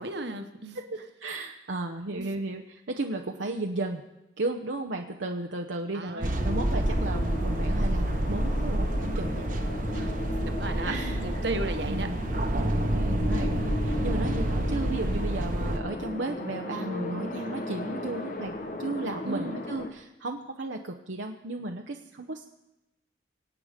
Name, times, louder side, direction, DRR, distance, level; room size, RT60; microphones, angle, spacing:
voice 1, 0.0-0.8 2.2-2.3 5.9-6.3 9.9-10.1 10.4-12.1 19.2-19.6, right 2 dB, 65° right, 7 dB, 1.4 m, -34 dB
voice 2, 0.7-4.0 4.4-9.5 10.8-11.2 11.9-12.2 12.9-18.5 18.8-22.5, right 2 dB, 80° right, 3 dB, 0.9 m, -34 dB
sound 1, 6.2-15.8, right 1 dB, 45° right, 1.1 m, -28 dB
sound 2, 6.3-19.9, left 2 dB, 45° left, 1.3 m, -36 dB
25.0 x 9.0 x 5.1 m, 0.96 s
head